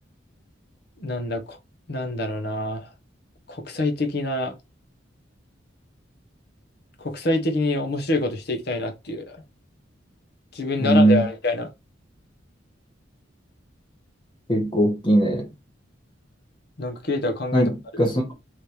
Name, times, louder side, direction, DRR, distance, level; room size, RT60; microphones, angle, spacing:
voice 1, 1.0-1.6 1.9-2.9 3.5-4.5 7.0-9.4 10.5-11.7 16.8-17.7, left 2 dB, 55° left, 0.9 m, -26 dB
voice 2, 10.8-11.2 14.5-15.5 17.5-18.3, right 1 dB, 25° left, 1.2 m, -20 dB
3.3 x 3.1 x 4.3 m
head